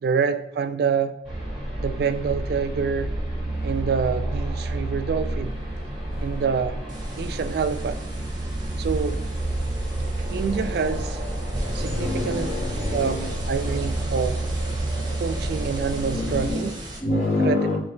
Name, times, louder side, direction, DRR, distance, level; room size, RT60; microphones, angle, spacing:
voice 1, 0.0-1.1 1.8-3.1 3.6-5.6 6.2-6.8 7.2-8.0 8.8-9.2 10.0-11.2 11.7-12.5 12.9-14.4 15.2-16.7 17.4-17.8, right 6 dB, 60° right, 10 dB, 0.3 m, -26 dB
sound 1, 1.2-16.5, right 1 dB, ahead, 1.2 m, -29 dB
sound 2, 6.9-17.0, right 1 dB, 25° right, 0.9 m, -36 dB
voice 2, 11.4-13.4 13.7-13.8 16.0-17.8, left 2 dB, 40° left, -5 dB, 1.2 m, -28 dB
3.2 x 3.1 x 4.4 m, 0.91 s
head